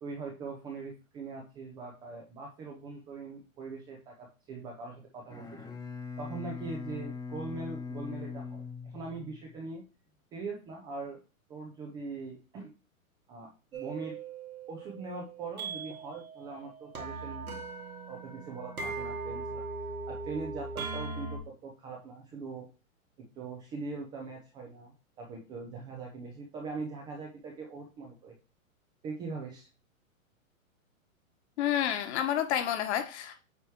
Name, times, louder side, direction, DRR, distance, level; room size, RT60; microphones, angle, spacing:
voice 1, 0.0-5.6 6.2-9.8 10.3-11.2 11.5-12.7 13.3-14.2 14.7-17.5 18.1-19.6 20.0-22.7 23.4-28.4 29.0-29.7, right 4 dB, 10° right, 0.4 m, -41 dB
Bowed string instrument, 5.2-9.6, left 5 dB, 10° left, 1.0 m, -41 dB
sound 1, 13.7-21.4, right 3 dB, 85° right, 2.2 m, -39 dB
voice 2, 31.6-33.4, left 10 dB, 50° left, 1.4 m, -29 dB
8.1 x 3.0 x 4.6 m
hypercardioid pair, 135°, 42 cm